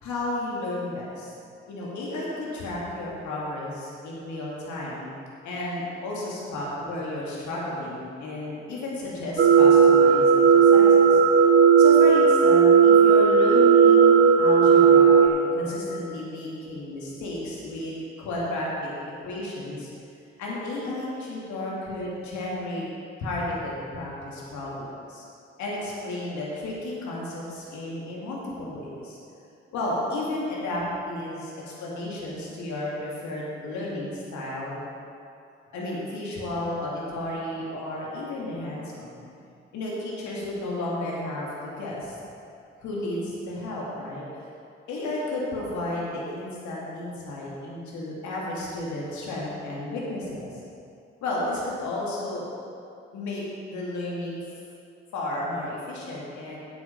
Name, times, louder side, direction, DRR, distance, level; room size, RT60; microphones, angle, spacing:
voice 1, 0.0-1.3 1.7-5.1 5.4-11.2 11.8-14.1 14.4-18.9 19.2-19.9 20.4-22.8 23.2-25.2 25.6-29.2 29.7-34.8 35.7-39.2 39.7-42.2 42.8-44.2 44.9-50.5 51.2-52.5 53.1-54.4 55.1-56.6, left 1 dB, 70° left, -5 dB, 2.4 m, -32 dB
sound 1, 9.4-15.3, right 6 dB, 45° right, 1.3 m, -15 dB
8.7 x 8.2 x 5.2 m, 2.6 s
hypercardioid pair, 45°, 30 cm